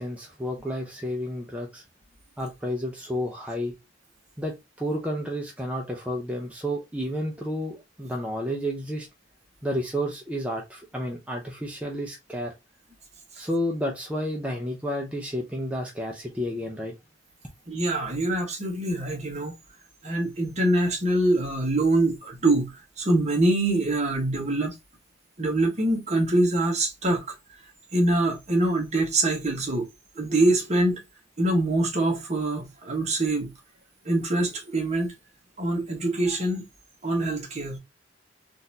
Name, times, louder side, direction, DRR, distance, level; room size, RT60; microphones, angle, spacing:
voice 1, 0.0-1.8 2.4-3.7 4.4-9.1 9.6-12.5 13.4-16.9, equal, 5° right, 0.6 m, -31 dB
voice 2, 17.7-19.5 20.0-24.7 25.4-27.2 27.9-29.9 30.1-31.0 31.4-33.5 34.0-35.1 35.6-36.7 37.0-37.8, right 1 dB, 35° right, 1.2 m, -24 dB
4.0 x 2.6 x 2.7 m
head